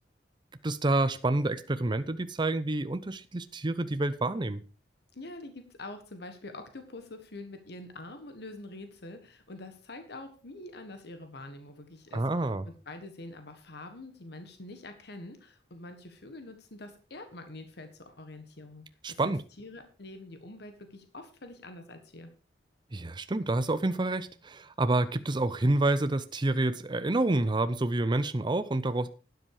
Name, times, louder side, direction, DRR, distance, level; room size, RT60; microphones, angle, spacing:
voice 1, 0.6-4.6 12.1-12.6 19.0-19.4 22.9-29.1, right 2 dB, 25° right, 0.6 m, -28 dB
voice 2, 5.1-22.3, left 2 dB, 65° left, 1.5 m, -45 dB
12.0 x 10.0 x 4.8 m
head